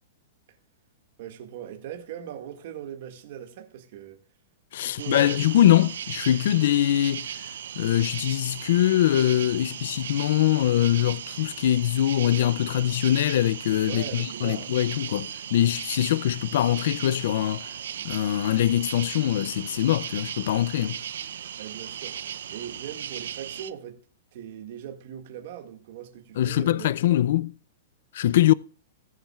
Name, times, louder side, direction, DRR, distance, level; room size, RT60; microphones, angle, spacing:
voice 1, 1.2-4.2 4.8-5.4 7.7-7.9 13.9-14.7 21.6-22.2 22.5-24.0 24.3-26.9, right 10 dB, 40° right, 1.8 m, -39 dB
voice 2, 4.7-17.8 18.0-21.0 26.4-27.5 28.1-28.5, left 12 dB, 50° left, 0.3 m, -23 dB
sound 1, 5.0-23.7, right 9 dB, 75° right, 0.6 m, -37 dB
20.0 x 7.3 x 2.3 m
supercardioid pair, 180°, 0 cm